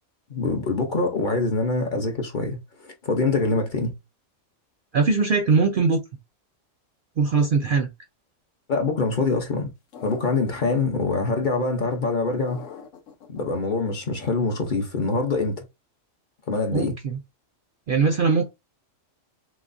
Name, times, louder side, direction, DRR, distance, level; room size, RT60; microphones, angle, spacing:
voice 1, 0.3-3.9 8.7-9.7 10.0-12.6 13.3-15.6 16.5-16.9, left 3 dB, 45° left, 0.8 m, -24 dB
voice 2, 4.9-6.0 7.2-7.9 16.7-17.2 17.9-18.5, right 4 dB, 60° right, 0.6 m, -21 dB
sound 1, 9.9-10.8 12.5-13.4, left 6 dB, 75° left, 1.1 m, -43 dB
6.0 x 2.0 x 2.5 m
omnidirectional pair, 1.3 m